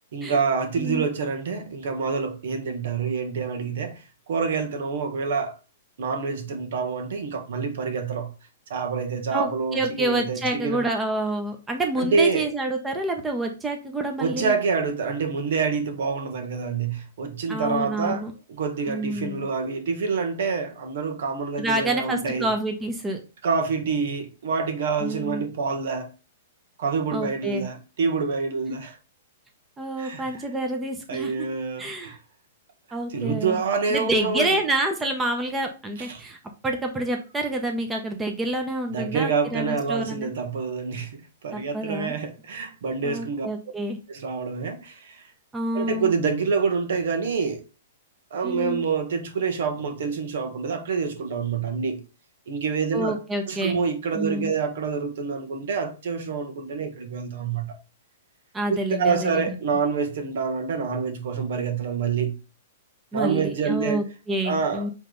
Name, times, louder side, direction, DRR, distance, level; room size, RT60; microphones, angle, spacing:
voice 1, 0.1-5.6 6.0-8.3 8.7-10.8 12.0-12.5 14.2-22.5 23.4-26.1 26.8-29.0 30.0-30.4 31.1-32.2 33.1-34.6 36.0-36.2 38.9-43.5 44.1-45.3 45.7-47.6 48.3-52.0 52.5-53.2 53.5-57.7 58.7-62.4 63.1-64.0 64.4-64.9, right 5 dB, 65° right, 1.5 m, -27 dB
voice 2, 9.3-14.5 17.5-18.3 18.9-19.4 21.6-23.2 25.0-25.4 27.1-27.7 28.7-28.8 29.8-31.3 31.8-32.2 32.9-33.6 33.9-36.4 36.6-40.4 41.5-42.1 43.0-44.0 45.5-46.2 48.4-48.8 52.9-53.8 54.2-54.5 58.5-59.6 63.1-64.9, right 1 dB, 10° right, 0.9 m, -28 dB
7.3 x 3.3 x 3.9 m
hypercardioid pair, 155°, 0 cm